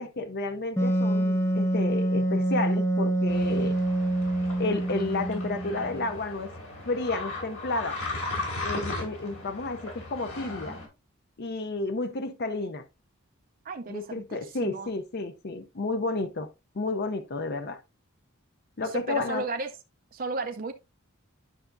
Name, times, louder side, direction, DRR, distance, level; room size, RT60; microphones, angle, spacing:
voice 1, 0.0-3.8 4.6-6.5 6.8-8.0 8.6-10.8 11.4-12.8 13.9-16.5 16.7-17.8 18.8-19.4, left 3 dB, 50° left, 0.6 m, -31 dB
Wind instrument woodwind instrument, 0.8-6.1, right 1 dB, 10° left, 1.1 m, -26 dB
sound 1, 3.3-10.9, left 2 dB, 90° left, 3.3 m, -37 dB
voice 2, 13.6-14.2 14.6-14.9 18.9-19.7 20.1-20.7, right 3 dB, 40° right, 0.6 m, -33 dB
10.0 x 5.7 x 2.5 m
head